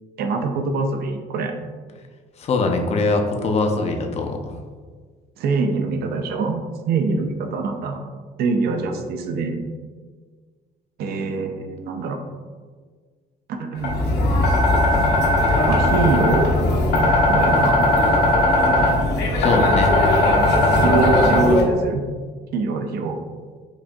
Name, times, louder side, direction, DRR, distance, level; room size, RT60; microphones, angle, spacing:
voice 1, 0.2-1.6 5.4-8.0 8.4-9.5 11.0-12.2 13.5-13.9 15.7-16.6 17.3-17.9 20.3-20.4 20.8-22.0 22.5-23.2, right 4 dB, 70° right, 5 dB, 0.5 m, -24 dB
voice 2, 2.4-4.6 19.4-19.9, left 3 dB, 40° left, 4 dB, 0.5 m, -22 dB
sound 1, 13.8-21.6, left 1 dB, 75° left, 0.9 m, -18 dB
4.9 x 2.7 x 2.2 m, 1.5 s
cardioid pair, 110°, 17 cm